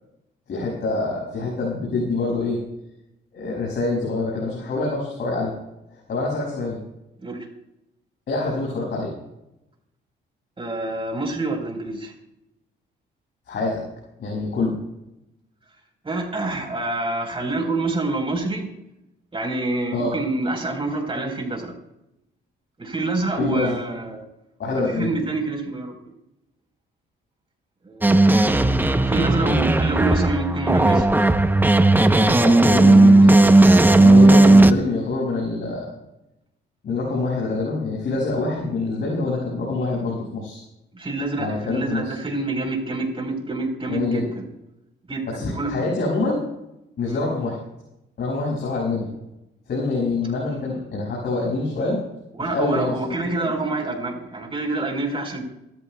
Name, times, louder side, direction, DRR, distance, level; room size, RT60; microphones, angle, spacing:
voice 1, 0.5-2.6 3.3-5.5 6.1-6.8 8.3-9.1 13.5-13.8 14.2-14.8 19.9-20.1 23.4-23.7 24.6-25.1 32.4-33.4 34.0-35.9 36.8-40.6 41.4-42.2 43.9-44.2 45.3-46.4 47.0-47.6 48.2-49.1 49.7-52.0 52.5-53.0 53.3-53.5, left 3 dB, 60° left, -4 dB, 6.8 m, -25 dB
voice 2, 10.6-12.1 16.0-18.7 19.3-21.7 22.8-24.2 24.9-25.9 27.8-28.2 29.1-31.1 40.9-44.5 45.1-45.7 47.0-47.2 52.3-55.4, right 2 dB, 25° right, 2 dB, 4.3 m, -27 dB
sound 1, 28.0-34.7, right 2 dB, 10° right, 0.8 m, -14 dB
27.5 x 14.0 x 2.3 m, 0.90 s
cardioid pair, 90°, 20 cm